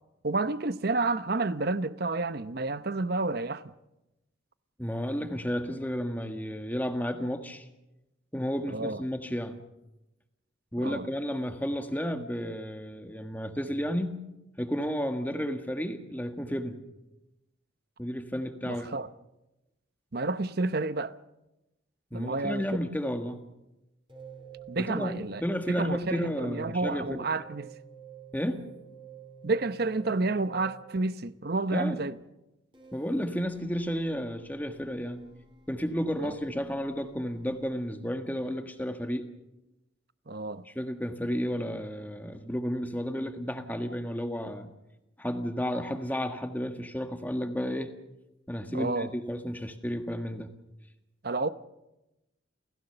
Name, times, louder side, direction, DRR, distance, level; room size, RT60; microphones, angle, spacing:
voice 1, 0.2-3.7 8.7-9.0 10.8-11.1 18.7-19.1 20.1-21.1 22.1-22.6 24.7-25.4 25.8-27.7 29.4-32.2 36.2-36.3 40.3-40.6 48.7-49.1 51.2-51.5, right 3 dB, 50° right, 0.8 m, -30 dB
voice 2, 4.8-7.7 8.3-9.6 10.7-14.2 14.6-16.8 18.0-19.0 22.1-23.4 24.8-27.3 28.3-28.6 31.7-32.0 32.9-35.2 35.7-39.2 40.6-44.7 45.2-47.9 48.5-50.5, equal, 10° left, 1.6 m, -32 dB
sound 1, 24.1-30.9 32.7-37.9, right 7 dB, 25° right, 3.8 m, -50 dB
29.5 x 16.0 x 6.8 m
head